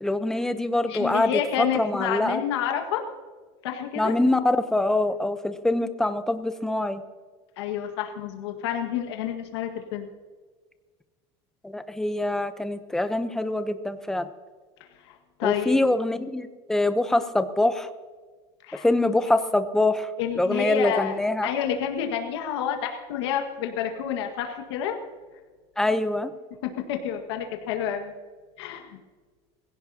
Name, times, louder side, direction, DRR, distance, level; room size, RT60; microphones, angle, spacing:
voice 1, 0.0-2.4 4.0-7.0 11.6-14.3 15.4-17.9 18.7-21.5 25.8-26.3, left 2 dB, 5° left, 10 dB, 0.8 m, -24 dB
voice 2, 0.9-3.0 3.6-4.1 7.6-10.1 15.0-15.8 18.6-18.9 20.2-21.2 21.4-24.9 26.6-28.1 28.6-29.0, left 9 dB, 90° left, 3 dB, 1.8 m, -29 dB
20.5 x 16.5 x 2.9 m, 1.4 s
supercardioid pair, 145°, 14 cm